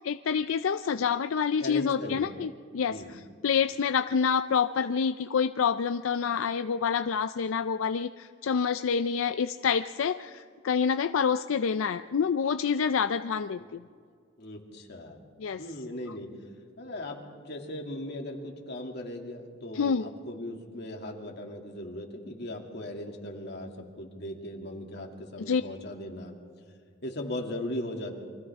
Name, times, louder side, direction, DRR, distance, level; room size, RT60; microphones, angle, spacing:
voice 1, 0.0-3.0 3.4-13.8 15.4-15.6 19.7-20.1 25.5-25.6, left 6 dB, 85° left, 11 dB, 0.4 m, -27 dB
voice 2, 1.6-2.3 2.9-3.2 13.6-13.7 14.4-15.2 15.6-16.3 16.8-23.7 24.0-26.4 27.0-28.1, left 1 dB, 55° left, 1 dB, 2.6 m, -38 dB
29.5 x 24.5 x 3.6 m, 2.1 s
head